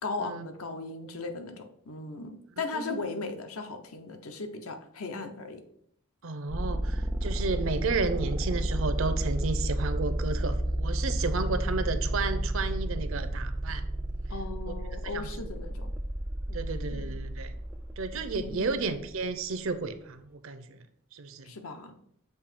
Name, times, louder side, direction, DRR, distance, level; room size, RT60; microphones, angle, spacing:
voice 1, 0.0-5.6 14.3-15.9 16.5-17.1 18.4-18.9 21.4-22.0, left 3 dB, 80° left, 7 dB, 0.7 m, -37 dB
voice 2, 6.2-13.8 14.7-14.8 15.1-15.3 16.5-17.5 18.0-20.8 21.1-21.5, right 4 dB, 65° right, 11 dB, 0.6 m, -32 dB
sound 1, 6.5-19.2, right 1 dB, 10° right, 0.3 m, -31 dB
6.9 x 2.7 x 5.0 m, 0.70 s
head